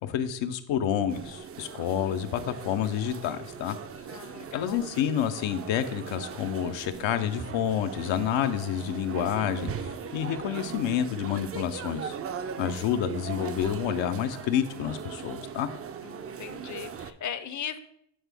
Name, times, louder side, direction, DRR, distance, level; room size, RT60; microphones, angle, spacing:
voice 1, 0.0-3.8 4.5-12.2 12.6-15.7, left 9 dB, 80° left, 9 dB, 0.7 m, -29 dB
sound 1, 1.1-17.1, right 7 dB, 35° right, 0.4 m, -39 dB
voice 2, 4.1-4.9 16.0-17.8, left 9 dB, 40° left, 11 dB, 0.6 m, -38 dB
7.8 x 3.6 x 3.4 m, 0.75 s
supercardioid pair, 70°, 45 cm